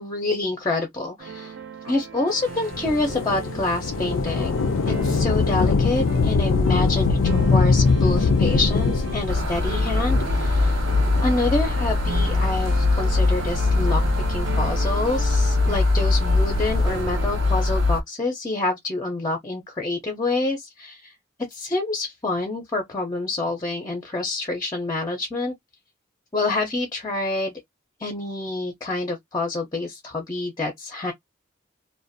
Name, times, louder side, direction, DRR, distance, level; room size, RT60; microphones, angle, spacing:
voice 1, 0.0-1.6 1.8-7.2 7.5-10.8 11.2-14.0 14.3-21.1 21.5-25.5 26.3-27.5 28.0-31.1, left 2 dB, 20° left, 0.5 m, -27 dB
sound 1, 1.2-18.0, right 4 dB, 60° right, 0.6 m, -37 dB
Thunder / Rain, 2.7-11.7 12.4-12.5 13.5-14.7 16.3-17.0, left 4 dB, 75° left, 0.4 m, -23 dB
sound 2, 9.3-18.0, left 2 dB, 75° right, 0.9 m, -22 dB
2.5 x 2.2 x 2.5 m
head